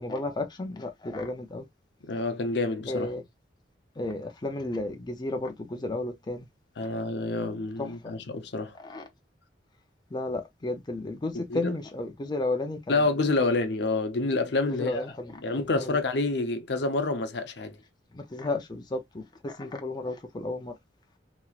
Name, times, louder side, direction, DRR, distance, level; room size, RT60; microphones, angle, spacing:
voice 1, 0.0-1.7 2.9-3.2 4.0-6.5 7.8-7.9 8.7-9.1 10.1-13.5 14.7-16.0 18.1-20.7, left 2 dB, 25° left, 0.5 m, -33 dB
voice 2, 2.0-3.1 6.8-8.7 11.3-11.8 12.9-15.0 15.4-17.7, left 3 dB, 65° left, 0.7 m, -28 dB
3.0 x 2.8 x 2.3 m
head